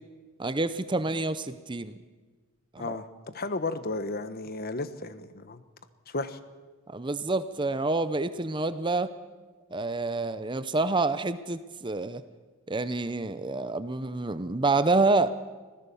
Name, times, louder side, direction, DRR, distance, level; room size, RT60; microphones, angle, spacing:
voice 1, 0.4-2.0 2.7-3.0 6.9-9.1 9.7-12.2 12.7-15.3, right 3 dB, 20° right, 13 dB, 0.6 m, -28 dB
voice 2, 2.8-5.6 6.1-6.4, left 2 dB, 45° left, 12 dB, 1.1 m, -34 dB
25.5 x 16.5 x 7.1 m, 1.4 s
head